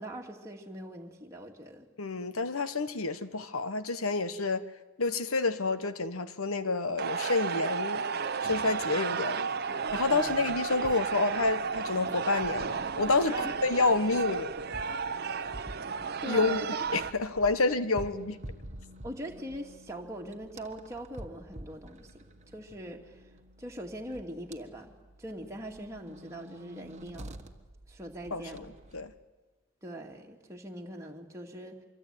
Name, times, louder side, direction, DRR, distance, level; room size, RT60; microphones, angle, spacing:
voice 1, 0.0-1.9 10.1-10.4 13.2-13.5 15.2-15.5 16.2-16.7 19.0-23.2 23.6-24.9 25.2-27.4 27.9-28.7 29.8-31.8, right 1 dB, 15° right, 2.4 m, -42 dB
voice 2, 2.0-4.6 5.0-8.0 8.4-9.5 9.9-14.5 16.2-16.6 16.9-18.4 28.3-28.6 28.9-29.1, left 3 dB, 70° left, 1.3 m, -29 dB
sound 1, 7.0-17.1, right 5 dB, 45° right, 0.8 m, -33 dB
sound 2, 9.9-29.2, right 1 dB, 30° right, 1.5 m, -50 dB
25.0 x 23.5 x 9.3 m
head